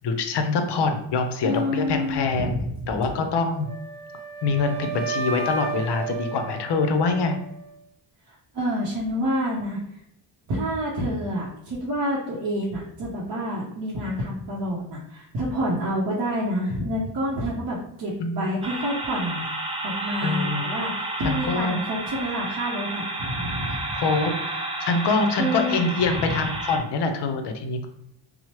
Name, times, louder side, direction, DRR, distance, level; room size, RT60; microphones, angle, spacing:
voice 1, 0.0-3.7 4.4-7.3 18.2-18.6 20.2-20.7 21.2-21.8 23.9-27.8, left 4 dB, 60° left, 6 dB, 0.6 m, -25 dB
voice 2, 1.4-3.1 8.3-10.0 10.5-24.0 25.4-26.4, equal, 50° right, -4 dB, 0.7 m, -28 dB
Wind instrument woodwind instrument, 3.7-7.8, right 5 dB, 85° right, 0.6 m, -33 dB
sound 1, 18.6-26.8, right 2 dB, 15° right, 0.3 m, -31 dB
3.0 x 2.0 x 2.9 m, 0.79 s
cardioid pair, 90°, 48 cm